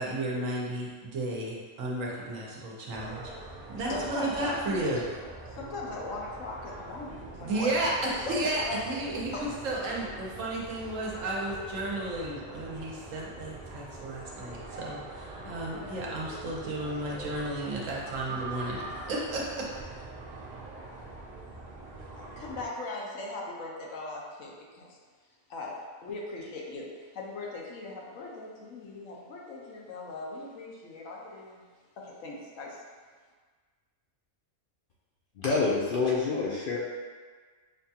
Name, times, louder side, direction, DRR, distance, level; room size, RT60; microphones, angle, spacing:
voice 1, 0.0-3.3 3.7-5.1 7.4-18.8 19.1-19.7, right 1 dB, 80° right, -4 dB, 1.2 m, -33 dB
sound 1, 2.9-22.7, right 3 dB, 50° right, 0.5 m, -43 dB
voice 2, 3.9-4.6 5.5-7.9 8.2-9.0 9.3-9.5 10.3-10.4 22.1-25.0 25.5-25.7 26.0-31.6 32.0-32.8, left 2 dB, 80° left, -2 dB, 1.1 m, -39 dB
voice 3, 35.4-36.8, left 4 dB, 60° left, -5 dB, 0.5 m, -27 dB
5.8 x 2.3 x 2.8 m, 1.5 s
omnidirectional pair, 1.3 m